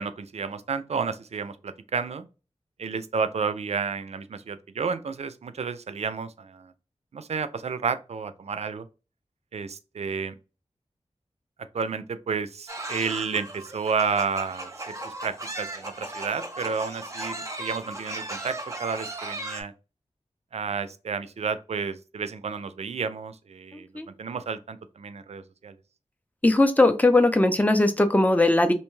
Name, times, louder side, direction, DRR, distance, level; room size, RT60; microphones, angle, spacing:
voice 1, 0.0-2.2 2.8-6.7 7.1-8.9 9.5-10.3 11.7-19.7 20.5-23.9 24.2-25.7, right 5 dB, 65° right, 0.4 m, -31 dB
sound 1, 12.7-19.6, right 2 dB, 25° right, 0.6 m, -36 dB
voice 2, 26.4-28.7, left 2 dB, 15° left, 0.5 m, -19 dB
2.7 x 2.2 x 3.0 m
wide cardioid pair, 60°, 12 cm